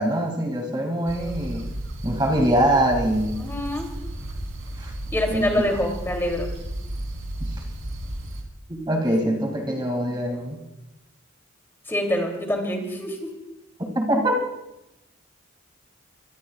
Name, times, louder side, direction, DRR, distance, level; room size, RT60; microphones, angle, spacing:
voice 1, 0.0-1.7 2.0-3.4 4.8-4.9 5.3-5.5 7.4-7.5 8.7-10.6 13.9-14.4, right 1 dB, 20° right, 1 dB, 2.5 m, -23 dB
sound 1, 1.1-8.4, right 1 dB, 75° right, 3.6 m, -33 dB
voice 2, 3.4-3.9 5.1-6.5 9.1-9.3 11.9-13.3, left 1 dB, 10° left, 1 dB, 3.0 m, -26 dB
24.5 x 24.0 x 2.4 m, 0.90 s
head